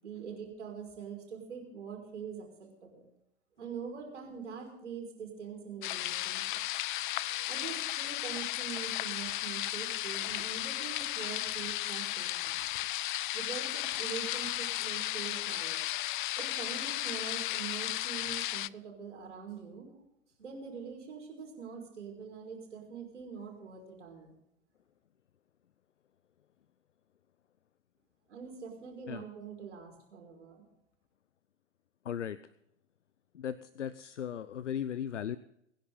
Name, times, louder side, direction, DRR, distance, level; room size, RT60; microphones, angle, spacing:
voice 1, 0.0-3.0 3.6-6.6 7.2-12.6 13.3-15.8 16.4-20.1 20.4-24.3 28.3-30.6, right 6 dB, 70° right, 1 dB, 5.5 m, -44 dB
sound 1, 5.8-18.7, left 16 dB, 45° left, 0.4 m, -35 dB
voice 2, 32.0-32.4 33.3-35.4, left 9 dB, 75° left, 17 dB, 0.7 m, -37 dB
24.5 x 10.5 x 3.9 m, 0.79 s
figure-of-eight pair, 95°, 37 cm